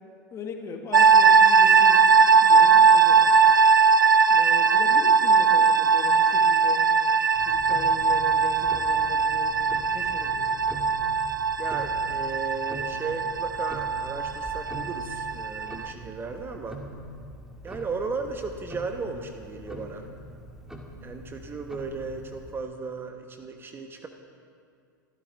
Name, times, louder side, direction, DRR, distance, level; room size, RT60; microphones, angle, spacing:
voice 1, 0.3-2.1 2.4-3.4 4.3-6.8 7.4-9.6 9.9-10.6, left 5 dB, 30° left, 4 dB, 1.9 m, -39 dB
sound 1, 0.9-15.9, right 5 dB, 80° right, 0.5 m, -20 dB
Tick-tock, 7.3-22.6, equal, 5° right, 2.2 m, -43 dB
voice 2, 11.6-16.8 17.6-20.1 21.0-24.1, right 4 dB, 20° right, 5 dB, 1.1 m, -35 dB
27.5 x 14.0 x 3.5 m, 2.3 s
figure-of-eight pair, 85°, 11 cm